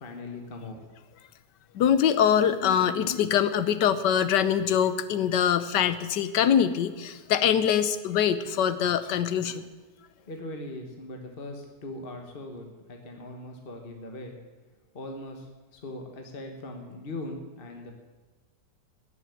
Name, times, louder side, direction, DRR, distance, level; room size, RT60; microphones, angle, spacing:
voice 1, 0.0-0.8 10.3-14.3 14.9-17.9, left 2 dB, 35° left, 3 dB, 1.5 m, -40 dB
voice 2, 1.7-9.6, left 9 dB, 80° left, 12 dB, 1.4 m, -24 dB
17.5 x 7.0 x 9.3 m, 1.3 s
omnidirectional pair, 1.9 m